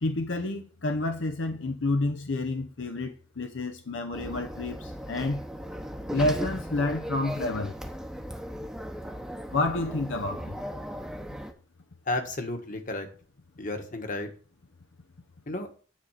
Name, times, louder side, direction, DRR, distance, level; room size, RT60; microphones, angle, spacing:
voice 1, 0.0-5.4 6.1-7.7 9.5-10.5, left 2 dB, 75° left, 0.8 m, -29 dB
sound 1, 4.1-11.5, equal, 5° right, 0.9 m, -37 dB
voice 2, 12.1-13.1 13.6-14.3 15.5-15.7, left 2 dB, 45° left, 1.5 m, -32 dB
9.6 x 4.0 x 7.3 m
head